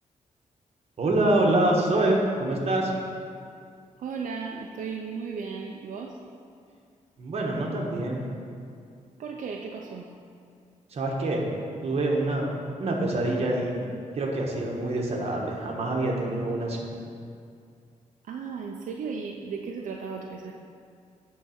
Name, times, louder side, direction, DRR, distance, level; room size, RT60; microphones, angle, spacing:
voice 1, 1.0-2.9 7.2-8.2 10.9-11.4 11.8-12.5 12.8-13.9 14.1-16.9, right 2 dB, 50° right, -1 dB, 1.3 m, -25 dB
voice 2, 4.0-6.2 9.2-10.1 18.2-20.5, right 5 dB, 80° right, 0 dB, 0.6 m, -35 dB
8.7 x 4.0 x 6.5 m, 2.3 s
wide cardioid pair, 145°, 13 cm